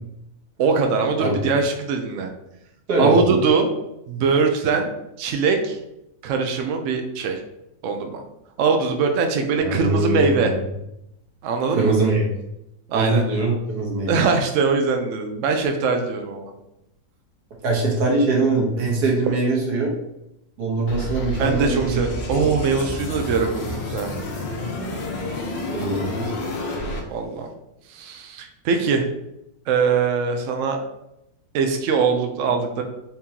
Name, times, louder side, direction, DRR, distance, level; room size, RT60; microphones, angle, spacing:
voice 1, 0.6-2.3 3.0-3.7 4.1-4.9 5.2-5.8 6.2-7.4 7.8-8.2 8.6-10.5 11.4-11.9 12.9-13.2 14.1-16.5 21.4-24.1 26.3-26.4 27.1-27.5 27.9-29.1 29.7-30.8 31.5-32.8, right 5 dB, 80° right, 4 dB, 0.7 m, -22 dB
voice 2, 2.9-3.2 9.6-10.5 11.7-12.3 12.9-14.2 17.6-19.9 20.6-22.0 22.3-22.5 25.7-26.3, right 2 dB, 65° right, -1 dB, 1.6 m, -22 dB
sound 1, 20.9-27.0, left 1 dB, 80° left, 1.5 m, -29 dB
4.3 x 3.7 x 2.8 m, 0.85 s
omnidirectional pair, 1.9 m